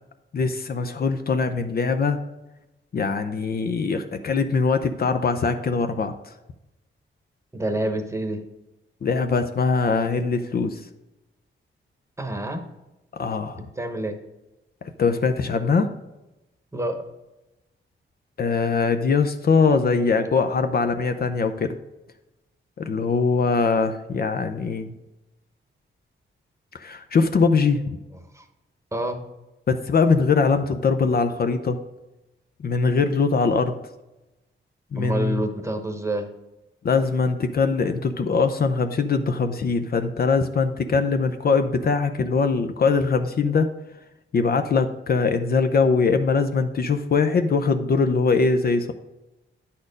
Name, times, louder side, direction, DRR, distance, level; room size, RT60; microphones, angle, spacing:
voice 1, 0.3-2.2 2.9-6.1 9.0-10.8 13.1-13.6 14.8-15.9 18.4-21.8 22.8-24.9 26.7-28.0 29.7-31.8 32.6-33.8 34.9-35.4 36.8-43.7 44.3-48.9, left 4 dB, 50° left, 8 dB, 0.6 m, -22 dB
voice 2, 7.5-8.4 12.2-12.6 13.6-14.2 16.7-17.0 28.3-28.4 28.9-29.2 35.0-36.3, right 1 dB, 15° right, 6 dB, 1.0 m, -28 dB
9.7 x 4.3 x 5.1 m, 1.0 s
cardioid pair, 105°, 21 cm